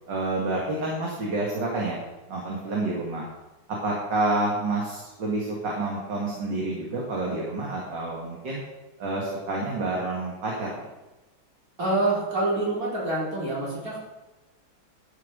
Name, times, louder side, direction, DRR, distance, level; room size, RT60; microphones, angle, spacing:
voice 1, 0.1-2.0 2.3-3.2 3.8-8.6 9.0-10.8, right 2 dB, 60° right, -3 dB, 2.6 m, -28 dB
voice 2, 11.8-14.0, right 2 dB, 40° right, -5 dB, 4.7 m, -26 dB
13.0 x 7.3 x 5.3 m, 1.1 s
omnidirectional pair, 2.3 m